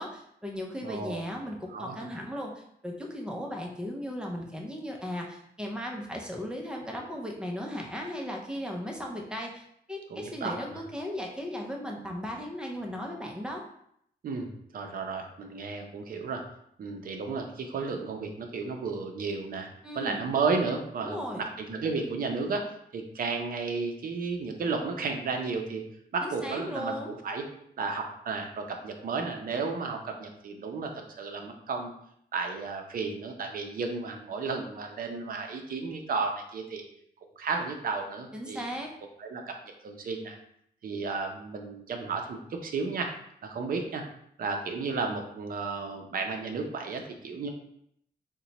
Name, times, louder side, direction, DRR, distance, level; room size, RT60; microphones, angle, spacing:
voice 1, 0.0-13.6 19.8-20.2 21.0-21.4 26.2-27.1 38.3-38.9, equal, 5° right, 0 dB, 0.5 m, -36 dB
voice 2, 0.8-1.2 1.7-2.1 10.1-10.8 14.2-16.4 16.8-19.7 20.0-25.8 26.1-27.4 27.8-30.9 31.2-31.9 32.3-36.8 37.4-38.8 39.2-39.6 39.8-40.4 40.8-43.1 43.4-44.0 44.4-47.5, right 4 dB, 55° right, 3 dB, 0.5 m, -33 dB
2.9 x 2.1 x 3.9 m, 0.71 s
wide cardioid pair, 170°, 18 cm